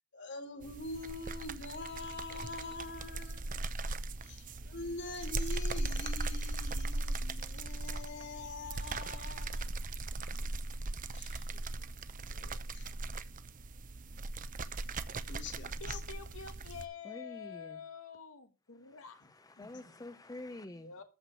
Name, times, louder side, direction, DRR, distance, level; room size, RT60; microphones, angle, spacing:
voice 1, 0.1-3.6 4.2-9.7 11.1-11.6 12.3-12.9 15.3-16.0 19.6-19.8, left 3 dB, 55° left, 3.2 m, -44 dB
sound 1, 0.6-16.9, right 2 dB, 40° right, 0.8 m, -38 dB
voice 2, 15.8-19.2 20.8-21.0, left 6 dB, 80° left, 1.5 m, -47 dB
voice 3, 17.0-17.8 18.8-20.9, left 2 dB, 20° left, 0.8 m, -48 dB
14.0 x 4.9 x 8.4 m
head